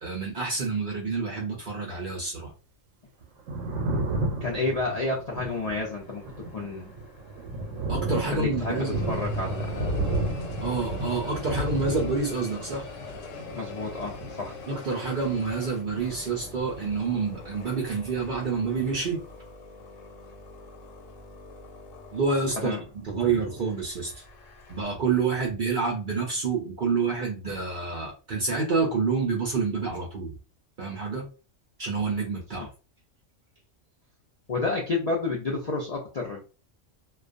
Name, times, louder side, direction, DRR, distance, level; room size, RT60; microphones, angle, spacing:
voice 1, 0.0-2.5 7.9-9.0 10.6-12.9 14.7-19.2 22.1-22.8 23.0-24.2 24.7-30.3 30.8-31.3 31.8-32.7, right 4 dB, 55° right, 0 dB, 0.6 m, -28 dB
Thunder, 3.2-17.7 17.9-19.2, right 1 dB, 85° right, 1.0 m, -33 dB
voice 2, 4.4-6.2 6.5-6.9 8.3-10.2 13.5-14.5 22.6-22.8 34.5-36.5, left 3 dB, 55° left, -1 dB, 0.4 m, -30 dB
sound 1, 5.5-8.2 8.6-24.9, left 5 dB, 80° left, 1.0 m, -45 dB
2.3 x 2.2 x 2.5 m, 0.33 s
omnidirectional pair, 1.3 m